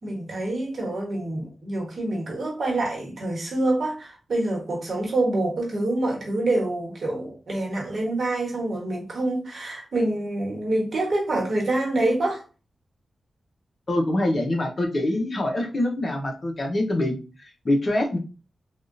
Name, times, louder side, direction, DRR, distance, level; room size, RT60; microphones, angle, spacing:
voice 1, 0.0-12.4, right 2 dB, 60° right, 1.2 m, -26 dB
voice 2, 13.9-18.2, left 1 dB, 40° left, 0.9 m, -25 dB
3.6 x 2.4 x 2.5 m
wide cardioid pair, 90°, 0 cm